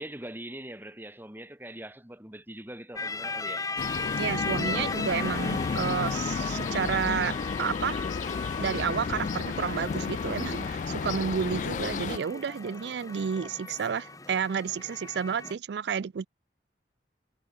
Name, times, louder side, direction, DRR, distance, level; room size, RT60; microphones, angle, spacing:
voice 1, 0.0-3.7, right 1 dB, 10° right, 3.6 m, -42 dB
sound 1, 3.0-15.5, left 3 dB, 20° left, 2.0 m, -37 dB
sound 2, 3.8-12.2, left 5 dB, 45° left, 0.3 m, -32 dB
voice 2, 4.2-8.1 8.6-16.3, right 7 dB, 75° right, 0.4 m, -31 dB
head